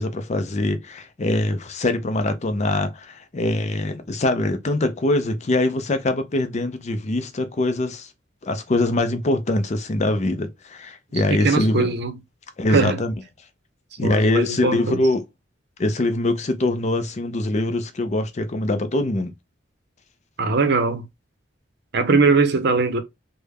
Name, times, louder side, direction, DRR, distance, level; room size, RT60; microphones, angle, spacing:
voice 1, 0.0-8.1 8.4-11.9 12.6-13.1 14.0-15.2 15.8-19.3, left 2 dB, 35° left, 0.5 m, -23 dB
voice 2, 11.4-12.1 12.7-13.0 14.0-15.0 20.4-21.0 21.9-23.0, right 4 dB, 55° right, 0.6 m, -20 dB
3.4 x 2.1 x 3.3 m
head